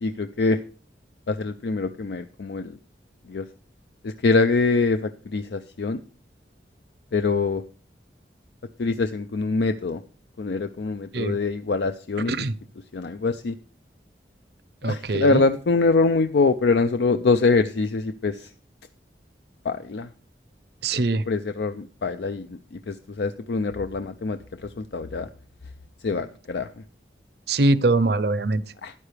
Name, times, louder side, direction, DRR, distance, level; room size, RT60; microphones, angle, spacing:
voice 1, 0.0-0.6 1.3-2.8 3.3-3.5 4.0-6.0 7.1-7.6 8.8-10.0 10.4-12.3 12.9-13.6 14.8-18.5 19.6-20.1 20.9-22.6 22.9-25.3 26.0-26.7 28.8-28.9, left 3 dB, 70° left, 10 dB, 0.5 m, -24 dB
voice 2, 14.8-15.4 20.8-21.2 27.5-28.6, right 2 dB, 65° right, 16 dB, 0.7 m, -22 dB
13.0 x 9.7 x 3.3 m, 0.39 s
head